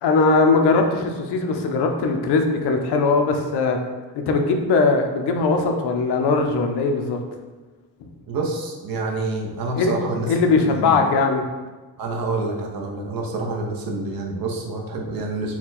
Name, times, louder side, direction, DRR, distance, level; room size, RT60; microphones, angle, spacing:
voice 1, 0.0-3.8 4.1-7.2 9.8-9.9 10.3-11.4, left 4 dB, 75° left, 4 dB, 0.7 m, -20 dB
voice 2, 8.3-11.0 12.0-15.6, right 2 dB, 60° right, 1 dB, 0.8 m, -27 dB
4.3 x 2.3 x 4.0 m, 1.3 s
cardioid pair, 130°, 41 cm